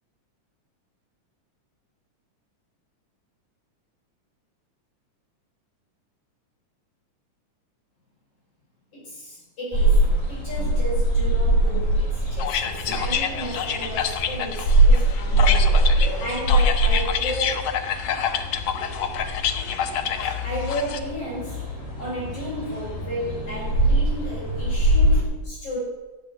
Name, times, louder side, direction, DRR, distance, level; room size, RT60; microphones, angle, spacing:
voice 1, 8.9-17.7 20.4-21.7 22.0-25.8, equal, 45° left, -7 dB, 6.5 m, -33 dB
sound 1, 9.7-25.2, right 1 dB, 25° left, 4.0 m, -22 dB
sound 2, 12.4-21.0, left 8 dB, 90° left, 1.2 m, -28 dB
13.0 x 7.3 x 9.5 m, 1.1 s
omnidirectional pair, 3.7 m